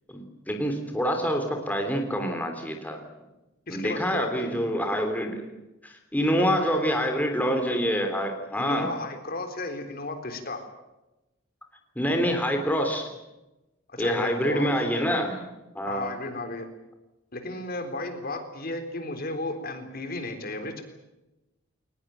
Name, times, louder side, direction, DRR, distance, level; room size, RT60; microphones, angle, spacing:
voice 1, 0.1-3.0 3.7-5.4 5.8-8.9 11.9-13.1 14.0-16.1, equal, 10° left, 4 dB, 3.3 m, -26 dB
voice 2, 3.7-4.6 6.2-6.8 8.6-10.7 13.9-14.7 15.9-16.7 17.3-20.8, left 2 dB, 45° left, 7 dB, 3.8 m, -34 dB
22.5 x 20.0 x 9.2 m, 0.99 s
head